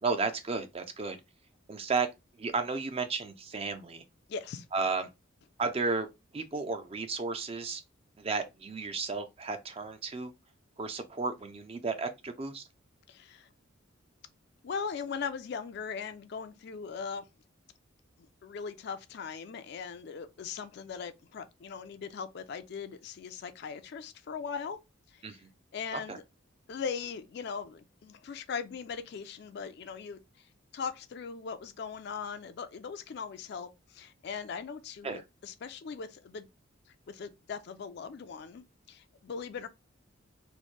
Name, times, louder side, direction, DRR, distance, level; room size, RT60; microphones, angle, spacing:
voice 1, 0.0-1.2 1.7-2.1 2.4-4.0 4.7-5.1 5.6-6.1 6.3-7.8 8.2-10.3 10.8-12.6 25.2-25.5 25.9-26.2 35.0-35.2, right 4 dB, 30° right, 0.4 m, -33 dB
voice 2, 4.3-4.7 13.1-13.5 14.6-17.3 18.4-24.8 25.1-25.2 25.7-26.2 26.7-30.5 30.7-36.5 37.1-39.7, left 6 dB, 55° left, 0.3 m, -39 dB
3.1 x 2.1 x 4.1 m
head